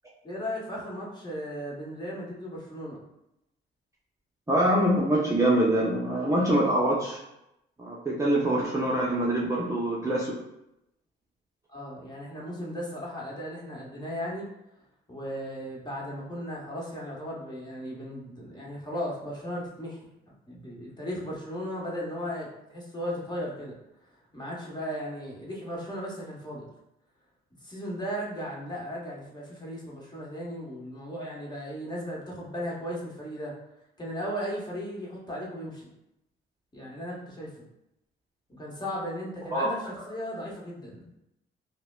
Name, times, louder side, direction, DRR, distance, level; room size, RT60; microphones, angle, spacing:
voice 1, 0.2-3.0 11.7-14.5 15.1-20.0 20.5-23.8 24.3-26.7 27.6-33.5 34.0-35.9 36.7-37.5 38.6-41.1, equal, 20° left, -4 dB, 1.1 m, -36 dB
voice 2, 4.5-7.2 7.8-10.3 39.5-39.7, right 1 dB, 15° right, -5 dB, 0.6 m, -24 dB
4.9 x 2.1 x 2.3 m, 0.85 s
cardioid pair, 90°, 20 cm